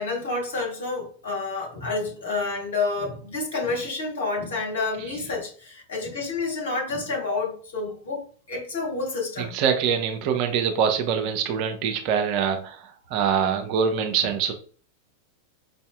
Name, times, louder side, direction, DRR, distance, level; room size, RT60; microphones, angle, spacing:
voice 1, 0.0-9.6, left 3 dB, 60° left, 1.8 m, -29 dB
voice 2, 9.4-12.8 13.1-14.5, right 7 dB, 45° right, 0.6 m, -24 dB
5.4 x 2.6 x 2.3 m
figure-of-eight pair, 90°, 0 cm